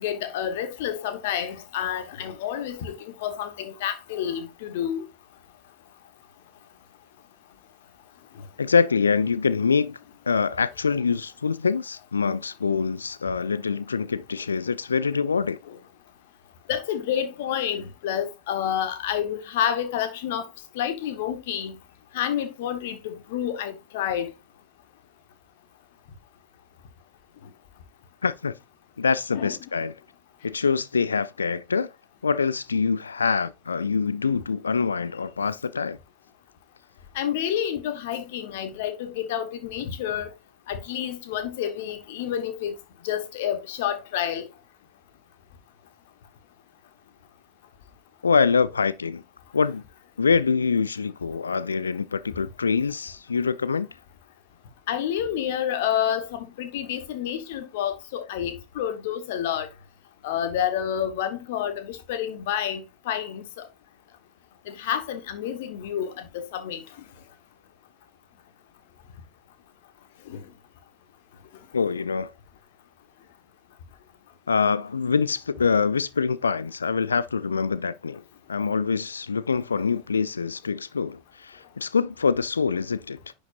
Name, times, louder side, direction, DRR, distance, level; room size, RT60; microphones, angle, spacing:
voice 1, 0.0-5.0 15.7-15.8 16.7-20.4 20.7-21.8 22.1-24.3 29.3-29.6 37.1-40.3 40.7-42.7 43.0-44.5 54.9-59.7 60.2-63.4 64.7-66.8 70.3-70.4, left 10 dB, 50° left, 1.3 m, -29 dB
voice 2, 8.6-10.0 10.3-15.6 28.2-28.5 29.0-29.9 30.4-31.9 32.2-36.0 48.2-49.2 49.5-49.8 50.2-53.9 71.7-72.3 74.5-78.2 78.5-83.3, left 5 dB, 75° left, 0.3 m, -25 dB
10.5 x 5.2 x 2.5 m
figure-of-eight pair, 90°, 0 cm